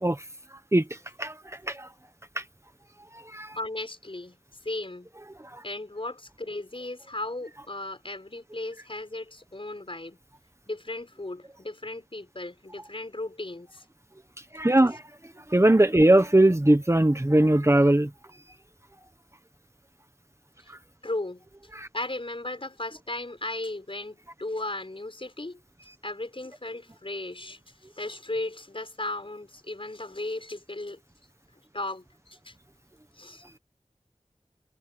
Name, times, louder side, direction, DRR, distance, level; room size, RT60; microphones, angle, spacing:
voice 1, 3.6-4.4 4.6-5.1 5.6-10.2 10.7-13.8 20.6-20.7 21.0-21.4 21.9-25.6 26.0-27.6 28.0-31.0 31.7-32.5 33.2-33.4, left 2 dB, 45° left, 6.4 m, -36 dB
voice 2, 14.5-15.0 15.5-18.1 21.7-21.9, right 1 dB, 20° right, 1.3 m, -20 dB
wide cardioid pair, 50°, 12 cm